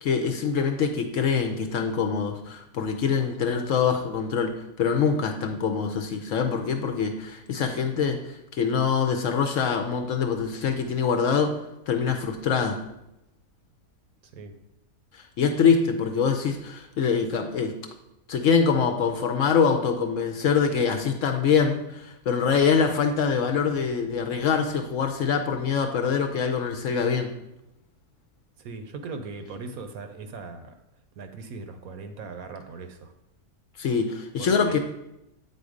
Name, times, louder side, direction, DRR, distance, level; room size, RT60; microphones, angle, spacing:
voice 1, 0.0-11.6 11.9-12.8 15.4-17.8 18.3-27.3 33.8-34.8, left 6 dB, 65° left, 5 dB, 0.9 m, -24 dB
voice 2, 28.6-30.7 31.2-33.1 34.4-34.8, right 4 dB, 70° right, 8 dB, 1.1 m, -39 dB
8.4 x 4.1 x 5.0 m, 0.87 s
omnidirectional pair, 1.6 m